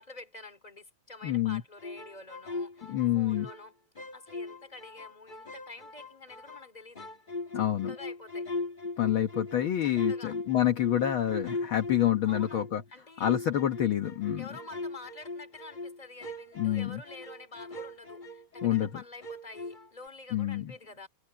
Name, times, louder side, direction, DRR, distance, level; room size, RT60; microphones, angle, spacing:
voice 1, 0.0-3.7 4.1-7.1 7.5-8.5 9.8-10.4 12.2-13.3 14.4-21.1, left 3 dB, 10° left, 2.9 m, -48 dB
voice 2, 1.2-1.6 2.9-3.5 7.5-7.9 9.0-12.8 13.2-14.4 16.6-17.0 18.6-18.9 20.3-20.7, left 11 dB, 65° left, 1.3 m, -27 dB
sound 1, 1.8-3.6 3.9-6.7 6.9-12.8 13.2-18.9 19.2-20.1, left 3 dB, 30° left, 0.9 m, -39 dB
omnidirectional pair, 3.9 m